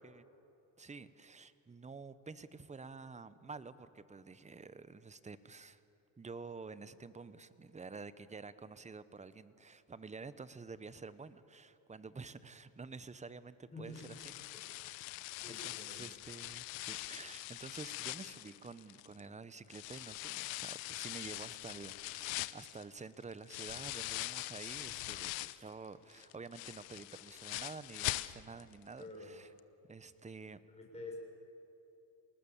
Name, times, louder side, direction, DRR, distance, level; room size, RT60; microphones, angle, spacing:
voice 1, 0.8-5.8 6.2-14.3 15.5-29.5 29.9-30.6, right 4 dB, 15° right, 15 dB, 0.9 m, -49 dB
voice 2, 13.7-14.0 14.8-14.9 15.3-16.0 29.0-29.3 30.7-31.2, left 2 dB, 15° left, 0 dB, 6.2 m, -48 dB
sound 1, 13.9-19.2 19.7-25.7 26.1-28.7 29.0-29.1 29.6-29.7, left 20 dB, 70° left, 0.9 m, -43 dB
27.5 x 19.5 x 7.3 m, 2.8 s
supercardioid pair, 100°, 48 cm